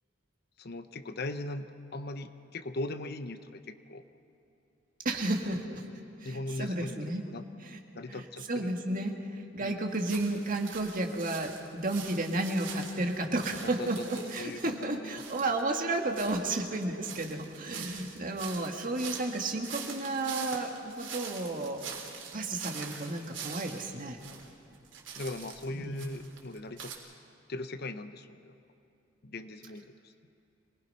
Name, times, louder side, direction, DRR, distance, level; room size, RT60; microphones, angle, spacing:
voice 1, 0.6-4.0 6.2-7.5 7.9-8.8 9.6-9.8 13.6-15.2 25.2-26.9 27.5-28.5 29.2-30.1, left 2 dB, 55° left, 10 dB, 0.9 m, -39 dB
voice 2, 5.1-5.8 6.2-7.2 7.6-7.8 8.1-21.8 22.3-24.2 25.7-26.0, right 2 dB, 45° right, 2 dB, 2.0 m, -32 dB
sound 1, 9.9-14.7 15.2-24.5 24.7-27.0, right 6 dB, 70° right, 3.2 m, -44 dB
26.5 x 19.5 x 5.6 m, 2.9 s
head